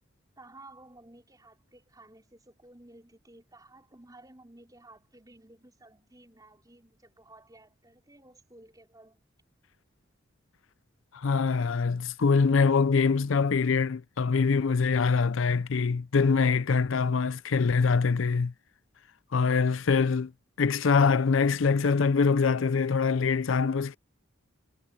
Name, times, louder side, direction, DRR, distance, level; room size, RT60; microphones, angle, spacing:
voice 1, 0.4-9.2, right 2 dB, 20° right, 5.3 m, -54 dB
voice 2, 11.1-18.5 19.3-20.3 20.6-23.9, left 5 dB, 75° left, 0.5 m, -24 dB
head